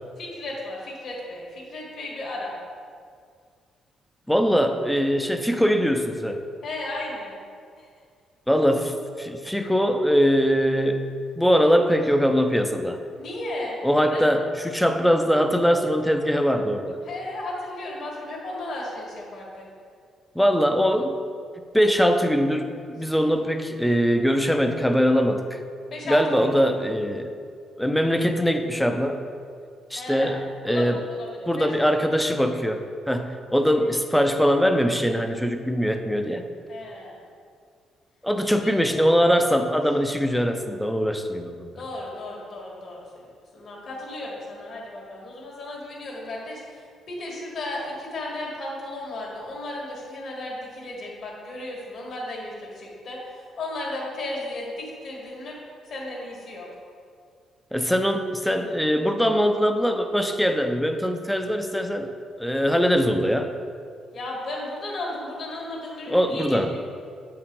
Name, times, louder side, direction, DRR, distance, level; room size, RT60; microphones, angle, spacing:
voice 1, 0.2-2.6 6.6-7.4 7.8-7.9 13.2-13.8 14.1-14.3 17.1-19.7 23.0-23.1 25.9-26.5 30.0-30.4 30.7-31.7 33.7-33.8 36.7-37.2 38.6-38.7 41.8-43.2 43.5-55.6 55.9-56.7 64.1-66.8, left 2 dB, 60° left, -3 dB, 1.7 m, -34 dB
voice 2, 4.3-6.4 8.5-13.0 13.8-17.0 20.4-21.2 21.7-25.6 26.1-27.3 27.8-29.2 29.9-31.0 31.5-36.4 38.2-41.8 57.7-62.1 62.4-63.5 66.1-66.8, equal, 5° left, 6 dB, 0.5 m, -22 dB
7.5 x 4.7 x 3.7 m, 2.1 s
cardioid pair, 90°, 0 cm